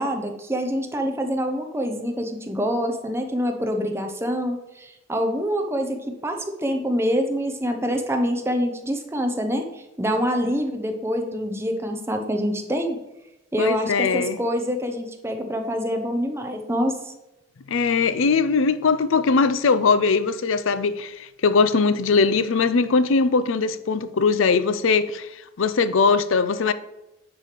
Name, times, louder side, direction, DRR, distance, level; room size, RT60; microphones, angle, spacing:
voice 1, 0.0-6.0 6.2-13.0 13.5-17.1, equal, 10° right, 0.8 m, -26 dB
voice 2, 13.6-14.4 17.7-26.7, left 4 dB, 75° left, 0.5 m, -20 dB
9.7 x 3.3 x 5.8 m
head